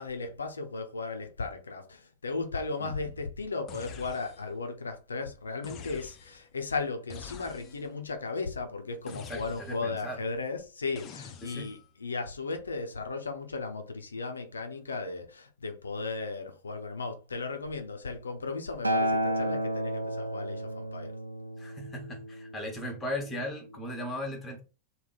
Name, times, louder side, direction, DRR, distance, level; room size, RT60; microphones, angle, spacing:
voice 1, 0.0-21.1, left 3 dB, 75° left, 0.6 m, -36 dB
voice 2, 2.8-3.1 9.3-10.2 11.4-11.7 21.6-24.6, left 1 dB, 15° left, 1.1 m, -37 dB
sound 1, 3.7-4.6 5.6-6.5 7.1-8.0 9.1-10.0 11.0-11.9, left 6 dB, 35° left, 0.5 m, -46 dB
Acoustic guitar, 18.8-23.1 24.0-24.1, equal, 85° right, 0.4 m, -32 dB
3.4 x 2.1 x 4.0 m
figure-of-eight pair, 90°, 0 cm